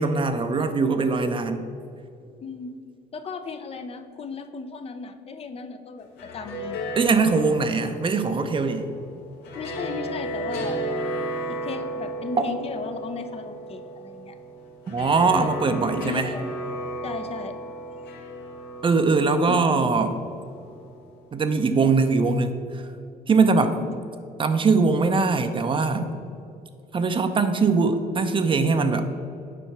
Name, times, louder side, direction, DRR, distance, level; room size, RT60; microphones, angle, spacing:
voice 1, 0.0-1.7 7.0-8.9 14.9-16.3 18.8-20.1 21.3-22.8 23.3-23.8 24.4-26.1 26.9-29.1, right 4 dB, 30° right, 8 dB, 0.6 m, -21 dB
voice 2, 2.4-2.7 3.1-6.8 9.5-10.8 11.5-14.3 15.3-15.5 16.0-16.4 17.0-17.6 19.5-19.9 23.8-24.0, left 4 dB, 35° left, 8 dB, 0.6 m, -35 dB
sound 1, 6.0-21.2, right 1 dB, 80° left, 1.4 m, -34 dB
8.4 x 4.5 x 5.9 m, 2.6 s
cardioid pair, 110°, 17 cm